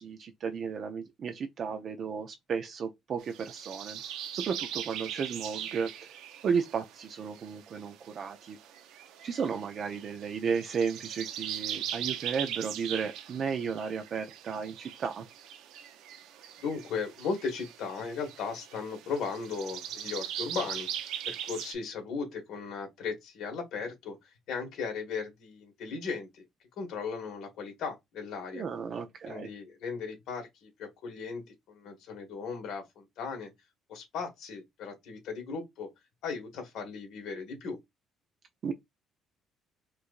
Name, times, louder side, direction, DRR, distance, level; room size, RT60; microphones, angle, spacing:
voice 1, 0.0-4.0 4.3-6.1 6.4-8.6 9.2-15.3 28.5-29.5 38.6-38.7, right 6 dB, 45° right, 0.4 m, -34 dB
sound 1, 3.2-21.7, right 10 dB, 85° right, 0.6 m, -40 dB
voice 2, 16.6-20.9 21.3-26.4 26.8-28.7 29.2-33.5 33.9-35.9 36.2-37.8, left 5 dB, 70° left, 1.7 m, -37 dB
4.6 x 2.5 x 2.4 m
cardioid pair, 135°, 0 cm